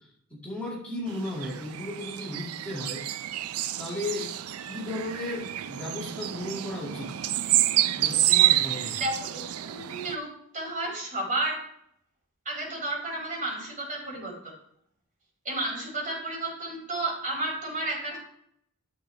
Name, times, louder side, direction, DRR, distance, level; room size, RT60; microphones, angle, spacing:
voice 1, 0.3-3.0 3.8-7.1 8.0-9.0, left 1 dB, 5° left, -6 dB, 2.2 m, -35 dB
sound 1, 1.1-10.1, right 14 dB, 80° right, 0.4 m, -28 dB
voice 2, 9.0-10.3 10.5-11.6 12.4-14.3 15.4-18.2, right 2 dB, 40° right, -3 dB, 4.6 m, -32 dB
13.0 x 7.0 x 3.3 m, 0.68 s
head